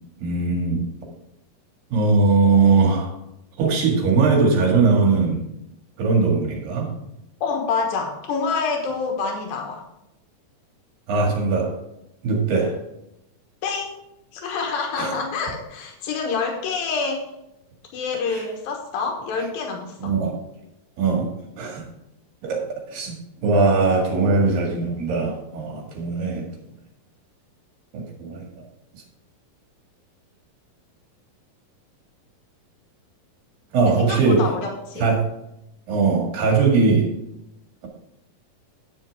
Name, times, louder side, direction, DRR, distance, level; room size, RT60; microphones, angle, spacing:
voice 1, 0.2-0.9 1.9-3.1 3.6-5.4 6.0-6.9 11.1-11.8 12.2-12.8 15.0-15.2 18.3-18.4 20.0-20.4 21.0-21.3 21.6-21.9 22.4-23.2 23.4-26.5 27.9-28.5 33.7-34.5 35.0-35.2 35.9-37.1, right 4 dB, 75° right, 0 dB, 3.7 m, -20 dB
voice 2, 7.4-9.8 13.6-14.0 14.3-17.3 17.9-20.2 33.8-35.1, left 4 dB, 85° left, 2 dB, 3.0 m, -27 dB
10.5 x 8.7 x 3.6 m, 0.84 s
omnidirectional pair, 4.0 m